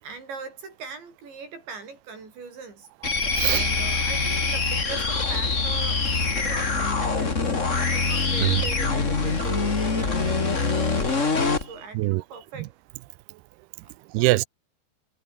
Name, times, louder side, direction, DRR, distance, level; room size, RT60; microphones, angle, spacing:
voice 1, 0.0-2.9 3.4-6.0 6.3-11.4 11.7-12.7 13.8-14.0, right 5 dB, 65° right, 9.6 m, -40 dB
sound 1, 3.0-11.7, left 4 dB, 35° left, 1.2 m, -24 dB
voice 2, 3.0-3.7 6.4-6.5 8.4-8.7 11.9-12.2 12.6-12.7 14.1-14.5, right 20 dB, 85° right, 2.4 m, -24 dB
omnidirectional pair, 5.6 m